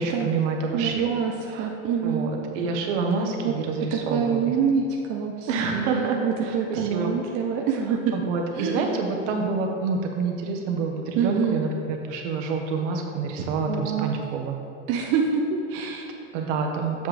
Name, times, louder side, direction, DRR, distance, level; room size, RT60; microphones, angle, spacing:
voice 1, 0.0-1.1 1.5-1.7 2.0-4.5 5.5-7.1 8.1-14.5 16.3-17.1, right 4 dB, 60° right, 2 dB, 1.4 m, -27 dB
voice 2, 0.7-1.3 1.6-2.4 3.4-3.5 3.9-8.1 8.6-9.0 11.2-11.6 13.7-14.2 14.9-16.2, right 6 dB, 35° right, 0 dB, 0.7 m, -26 dB
8.3 x 7.1 x 3.4 m, 2.6 s
supercardioid pair, 135°, 40 cm